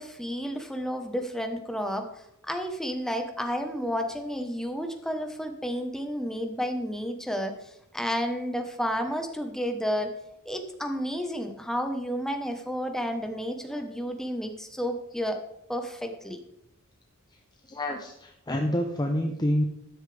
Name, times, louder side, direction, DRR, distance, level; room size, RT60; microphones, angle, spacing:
voice 1, 0.0-10.1 10.4-15.4 15.7-16.4, equal, ahead, 5 dB, 1.1 m, -31 dB
voice 2, 17.6-19.6, left 1 dB, 20° left, 2 dB, 0.8 m, -28 dB
13.0 x 9.5 x 3.4 m, 0.80 s
head